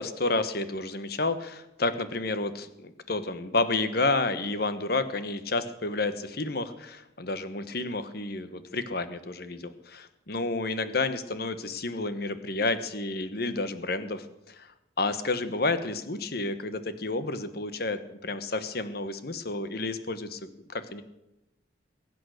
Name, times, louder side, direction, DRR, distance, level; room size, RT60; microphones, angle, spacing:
voice 1, 0.0-14.7 15.0-21.0, left 3 dB, 55° left, 11 dB, 1.2 m, -30 dB
22.0 x 9.2 x 6.5 m, 0.91 s
head